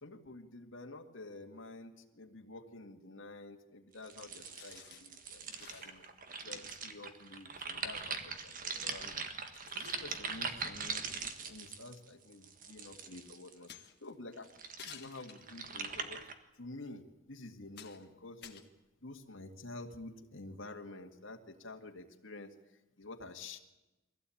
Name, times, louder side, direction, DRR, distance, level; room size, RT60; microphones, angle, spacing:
voice 1, 0.0-6.0 6.4-9.2 9.7-13.7 14.0-14.5 14.8-16.3 16.5-18.6 19.0-23.6, left 2 dB, 70° left, 3 dB, 2.1 m, -49 dB
sound 1, 4.0-13.7 14.3-16.3, right 5 dB, 40° right, 1.5 m, -42 dB
sound 2, 4.4-5.2 5.5-6.1 7.6-7.7 8.6-8.7 9.4-10.7 11.9-12.0 13.7-14.1 14.8-15.9 16.6-16.7 17.3-17.4 17.7-18.1 18.4-19.4, left 9 dB, 50° left, 1.7 m, -54 dB
23.0 x 16.5 x 8.6 m, 1.0 s
head